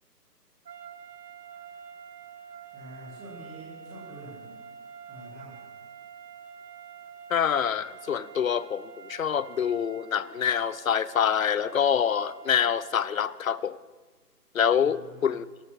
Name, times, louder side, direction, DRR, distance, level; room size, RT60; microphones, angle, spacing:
sound 1, 0.6-13.5, right 7 dB, 85° right, 1.0 m, -47 dB
voice 1, 2.7-4.5 5.1-5.7 14.8-15.4, equal, 5° right, -5 dB, 1.3 m, -46 dB
voice 2, 7.3-13.8 14.5-15.4, left 8 dB, 60° left, 17 dB, 0.6 m, -26 dB
26.0 x 12.5 x 3.2 m, 1.3 s
hypercardioid pair, 170°, 48 cm